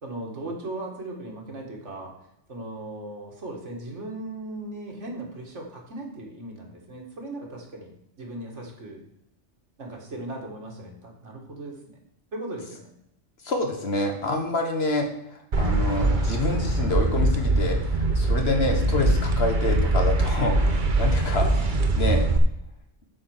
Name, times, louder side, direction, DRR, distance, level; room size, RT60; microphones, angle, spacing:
voice 1, 0.0-2.1 2.5-7.9 8.2-9.0 9.8-12.0 12.3-12.9 15.6-16.1, right 2 dB, 85° right, 0 dB, 2.2 m, -37 dB
voice 2, 13.4-22.3, left 2 dB, 60° left, 3 dB, 1.6 m, -27 dB
sound 1, 15.5-22.4, right 2 dB, 45° right, 1.0 m, -22 dB
8.4 x 4.5 x 7.1 m, 0.78 s
omnidirectional pair, 1.2 m